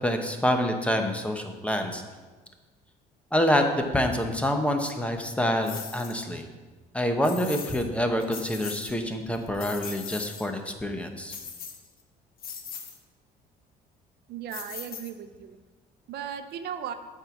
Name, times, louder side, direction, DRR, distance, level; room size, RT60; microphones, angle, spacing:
voice 1, 0.0-2.0 3.3-6.4 6.9-11.3, equal, 5° left, 4 dB, 1.0 m, -27 dB
sound 1, 5.6-6.2 7.2-7.9 8.2-8.9 9.3-10.5 11.3-12.0 12.4-13.0 14.5-15.4, left 6 dB, 60° left, 1.2 m, -39 dB
voice 2, 14.3-15.6 16.1-16.9, right 9 dB, 70° right, 9 dB, 0.7 m, -36 dB
8.8 x 4.6 x 7.2 m, 1.3 s
cardioid pair, 110°, 17 cm